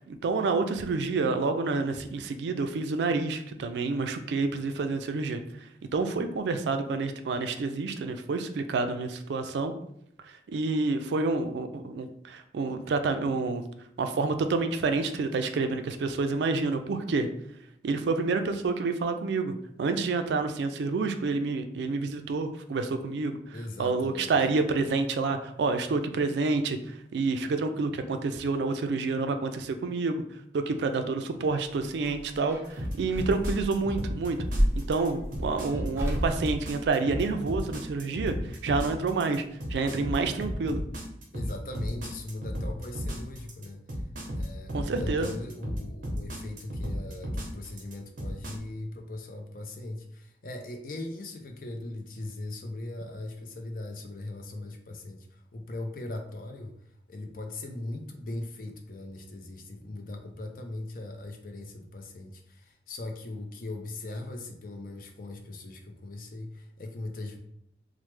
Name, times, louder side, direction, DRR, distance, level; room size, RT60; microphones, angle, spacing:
voice 1, 0.0-5.4 5.9-9.7 10.5-13.6 14.0-17.3 17.8-23.4 23.8-30.2 30.5-34.4 34.7-38.4 38.6-39.4 39.7-40.8 44.7-45.3, right 3 dB, 75° right, 7 dB, 0.3 m, -28 dB
voice 2, 23.5-24.3 41.3-44.0 44.3-56.8 57.1-67.4, left 2 dB, 50° left, 4 dB, 0.4 m, -39 dB
sound 1, 31.5-37.5 38.9-39.8 40.0-40.1, equal, 15° right, 0.5 m, -33 dB
sound 2, 32.8-48.5, equal, 45° right, 0.8 m, -34 dB
3.1 x 2.0 x 3.1 m, 0.76 s
head